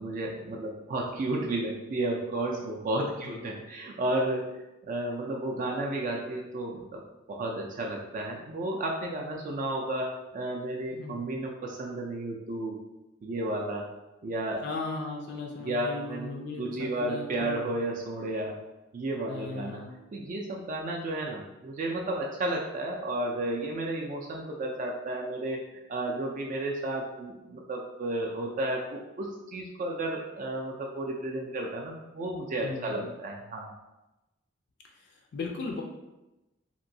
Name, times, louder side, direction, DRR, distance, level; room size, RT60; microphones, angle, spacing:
voice 1, 0.0-7.0 7.3-12.8 13.2-13.9 14.2-14.6 15.6-18.6 18.9-19.8 20.1-33.7, right 1 dB, 40° right, -1 dB, 0.3 m, -32 dB
voice 2, 14.6-17.6 19.3-19.9 32.6-33.1 35.0-35.8, left 3 dB, 60° left, 0 dB, 0.4 m, -37 dB
2.9 x 2.6 x 2.6 m, 1.0 s
head